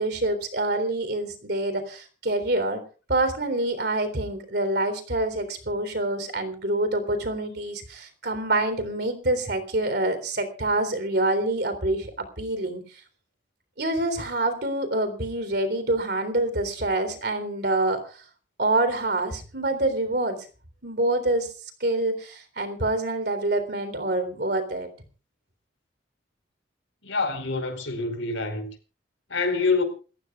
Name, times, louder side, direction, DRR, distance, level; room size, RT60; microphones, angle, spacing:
voice 1, 0.0-2.8 3.1-12.8 13.8-18.2 18.6-20.4 20.8-21.5 21.8-24.9, right 2 dB, 55° right, 3.7 m, -26 dB
voice 2, 27.0-28.7 29.3-29.8, left 4 dB, 85° left, 4.5 m, -26 dB
29.0 x 14.5 x 2.4 m
head